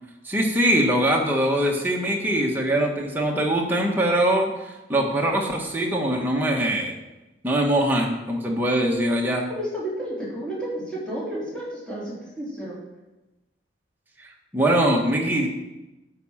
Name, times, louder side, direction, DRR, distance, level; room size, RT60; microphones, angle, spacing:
voice 1, 0.2-6.9 7.4-9.5 14.5-15.5, right 1 dB, 10° right, -1 dB, 1.5 m, -22 dB
voice 2, 9.6-12.8, right 1 dB, 5° left, -8 dB, 3.7 m, -31 dB
9.8 x 5.6 x 7.3 m, 1.0 s
head